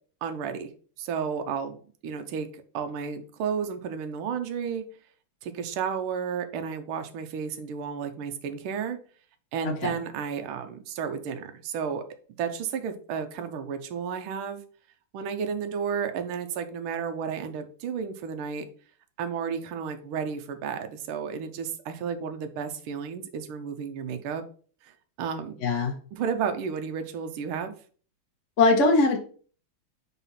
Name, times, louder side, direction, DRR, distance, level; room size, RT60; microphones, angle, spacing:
voice 1, 0.2-0.7 1.0-1.8 2.0-4.8 5.4-9.0 9.5-12.0 12.4-14.6 15.1-18.6 19.2-24.4 24.8-25.6 26.1-27.7, right 6 dB, 75° right, 7 dB, 1.6 m, -32 dB
voice 2, 25.6-25.9 28.6-29.2, left 3 dB, 40° left, 1 dB, 1.2 m, -20 dB
4.2 x 4.1 x 5.6 m, 0.42 s
omnidirectional pair, 2.4 m